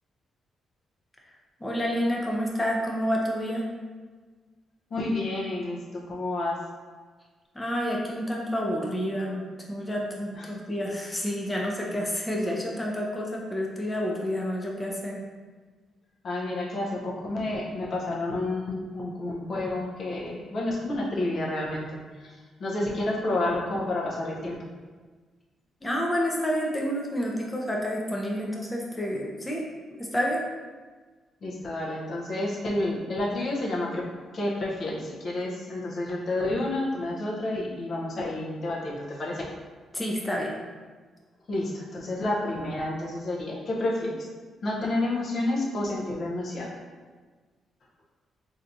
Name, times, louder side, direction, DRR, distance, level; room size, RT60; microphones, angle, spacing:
voice 1, 1.6-3.7 7.6-15.2 25.8-29.6 30.0-30.4 39.9-40.5, equal, 20° left, -2 dB, 0.6 m, -29 dB
voice 2, 4.9-6.6 10.3-10.6 16.2-24.6 31.4-34.0 34.3-39.5 41.5-44.2 44.6-46.7, left 2 dB, 60° left, -3 dB, 0.7 m, -30 dB
3.2 x 2.7 x 2.6 m, 1.4 s
supercardioid pair, 60°, 0 cm